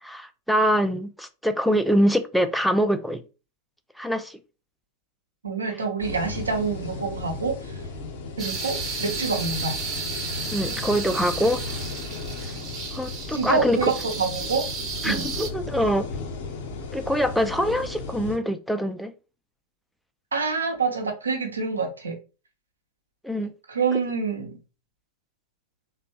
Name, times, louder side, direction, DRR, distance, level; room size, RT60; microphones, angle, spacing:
voice 1, 0.0-3.2 4.0-4.4 10.5-11.8 12.9-13.9 15.0-16.1 16.9-19.1 23.2-23.5, equal, ahead, 0.3 m, -24 dB
voice 2, 5.4-7.8 8.4-9.8 13.3-14.7 15.0-15.2 20.3-22.2 23.7-24.5, right 4 dB, 75° right, 0.7 m, -26 dB
sound 1, 6.0-18.4, left 3 dB, 55° left, 0.6 m, -35 dB
sound 2, 8.4-15.5, right 4 dB, 30° right, 0.8 m, -33 dB
3.4 x 2.0 x 2.8 m
figure-of-eight pair, 90°, 0 cm